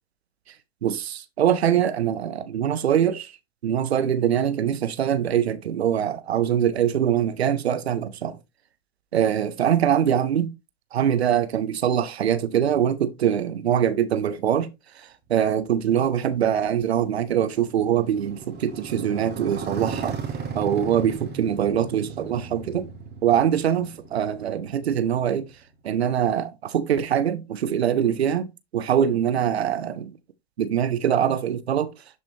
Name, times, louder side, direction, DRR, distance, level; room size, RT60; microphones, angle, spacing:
voice 1, 0.8-3.3 3.6-8.4 9.1-10.5 10.9-14.7 15.3-20.2 20.5-22.9 23.2-25.5 25.8-30.1 30.6-31.9, right 9 dB, 85° right, 0.8 m, -23 dB
Motorcycle, 15.7-25.6, right 5 dB, 35° right, 2.4 m, -36 dB
11.0 x 4.3 x 2.8 m
hypercardioid pair, 85°, 31 cm